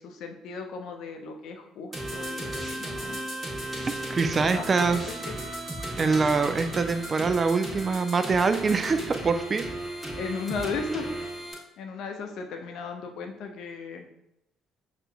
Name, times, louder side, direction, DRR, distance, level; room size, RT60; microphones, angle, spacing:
voice 1, 0.0-3.2 4.5-5.0 5.3-5.4 10.2-11.1 11.8-14.1, left 4 dB, 60° left, 4 dB, 0.5 m, -36 dB
sound 1, 1.9-11.5, right 1 dB, 20° right, 1.2 m, -35 dB
voice 2, 3.9-5.0 6.0-9.7, right 4 dB, 35° right, 9 dB, 0.3 m, -24 dB
6.6 x 2.4 x 2.3 m, 0.84 s
figure-of-eight pair, 50°, 0 cm